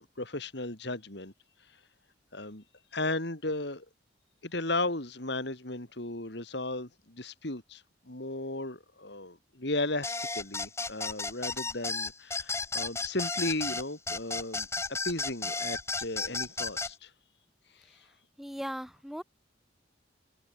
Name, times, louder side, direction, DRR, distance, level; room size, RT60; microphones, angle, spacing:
voice 1, 0.0-1.3 1.6-1.8 2.3-2.6 2.9-3.9 4.4-17.1 17.7-18.1, left 2 dB, 55° left, 2.8 m, -35 dB
sound 1, 10.0-16.9, left 3 dB, 15° left, 3.8 m, -33 dB
voice 2, 18.4-19.2, equal, ahead, 7.1 m, -38 dB
head